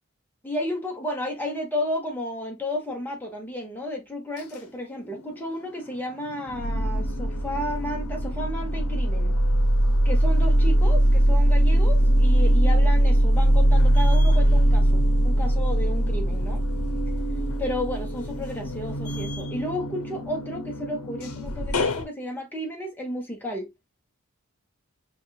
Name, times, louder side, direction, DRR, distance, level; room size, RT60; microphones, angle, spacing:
voice 1, 0.4-9.3 10.0-16.6 17.6-23.7, left 1 dB, 10° left, 1.1 m, -32 dB
sound 1, 5.0-5.8 6.1-22.0, right 1 dB, 90° left, 0.7 m, -21 dB
5.2 x 2.5 x 2.3 m
head